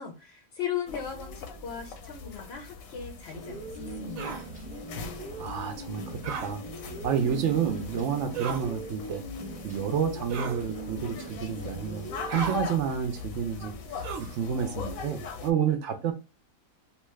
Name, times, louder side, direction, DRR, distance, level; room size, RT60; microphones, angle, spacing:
voice 1, 0.0-4.4, left 8 dB, 60° left, 0.7 m, -37 dB
sound 1, 0.9-15.5, left 5 dB, 80° left, 1.0 m, -41 dB
sound 2, 3.3-12.6, right 1 dB, 5° right, 0.8 m, -41 dB
sound 3, 4.2-4.4 6.2-6.5 8.3-8.7 10.3-10.6 12.3-12.6 14.0-14.4, right 6 dB, 85° right, 1.1 m, -35 dB
voice 2, 5.4-6.6 7.0-9.2 9.6-16.1, right 8 dB, 70° right, 0.8 m, -30 dB
2.8 x 2.3 x 3.1 m
omnidirectional pair, 1.4 m